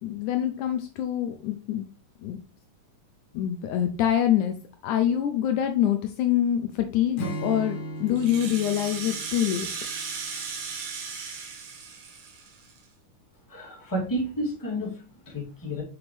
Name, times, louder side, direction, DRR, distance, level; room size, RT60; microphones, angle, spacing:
voice 1, 0.0-1.8 2.2-2.4 3.3-4.6 4.8-9.7, left 10 dB, 80° left, 6 dB, 2.0 m, -25 dB
Acoustic guitar / Strum, 7.2-10.6, equal, 60° left, 1.5 m, -37 dB
Rattle (instrument), 8.1-12.8, right 5 dB, 75° right, 2.7 m, -36 dB
voice 2, 13.5-15.8, equal, 5° left, -4 dB, 1.9 m, -31 dB
6.2 x 6.0 x 3.2 m, 0.36 s
omnidirectional pair, 3.7 m